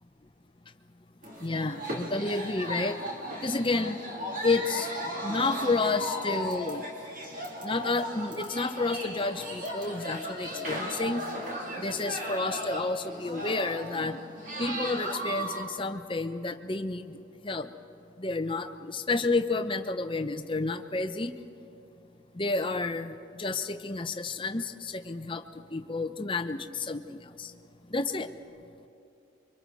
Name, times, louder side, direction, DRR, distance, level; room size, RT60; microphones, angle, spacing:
sound 1, 1.2-15.6, equal, 40° right, 3.2 m, -36 dB
voice 1, 1.4-3.0 3.4-4.0 4.4-4.9 5.2-6.8 7.6-11.2 11.8-14.2 14.6-17.2 17.4-17.7 18.2-21.3 22.3-25.4 25.7-27.5 27.9-28.3, left 3 dB, 25° left, 9 dB, 0.7 m, -30 dB
29.5 x 24.5 x 4.2 m, 2.8 s
head